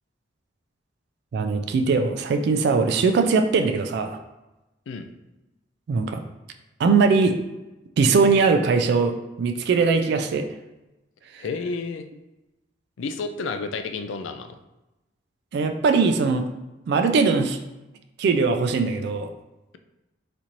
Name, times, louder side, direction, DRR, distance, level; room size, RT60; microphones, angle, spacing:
voice 1, 1.3-4.2 5.9-6.2 6.8-7.4 8.0-10.5 11.3-11.4 15.5-16.5 16.9-17.6 18.2-19.3, right 4 dB, 60° right, 7 dB, 0.3 m, -21 dB
voice 2, 11.4-12.1 13.0-14.6, left 4 dB, 85° left, 8 dB, 0.4 m, -31 dB
4.2 x 2.5 x 3.0 m, 1.0 s
head